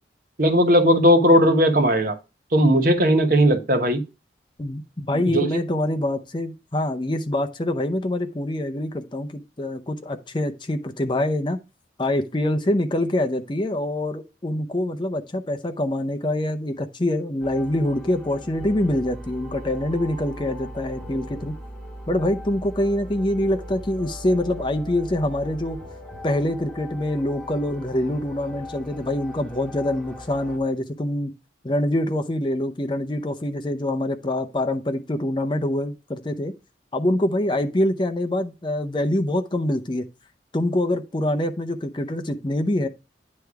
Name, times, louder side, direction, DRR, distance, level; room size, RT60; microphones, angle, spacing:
voice 1, 0.4-2.1 2.5-4.0 5.3-5.5, equal, 50° right, 1.1 m, -17 dB
voice 2, 4.6-11.6 12.0-21.5 22.1-25.8 26.2-31.3 31.6-36.5 36.9-40.0 40.5-42.9, left 1 dB, 25° left, 0.6 m, -25 dB
sound 1, 17.4-30.6, equal, 5° left, 1.7 m, -39 dB
9.7 x 3.4 x 4.7 m
head